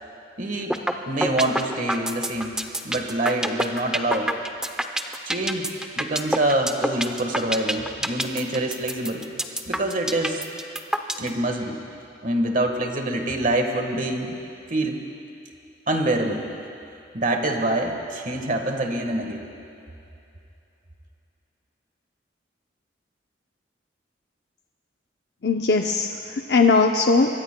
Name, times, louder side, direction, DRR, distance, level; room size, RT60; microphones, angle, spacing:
voice 1, 0.4-0.8 1.1-2.6 2.8-4.3 5.3-5.7 6.0-9.3 9.7-10.4 11.2-11.8 12.2-14.4 14.7-15.0 15.9-16.4 17.1-19.4, right 1 dB, 45° right, 4 dB, 1.4 m, -25 dB
sound 1, 0.7-0.9 1.2-11.3, right 1 dB, 5° right, 0.6 m, -25 dB
voice 2, 25.4-27.3, left 4 dB, 60° left, 3 dB, 0.5 m, -19 dB
24.5 x 23.5 x 2.2 m, 2.7 s
head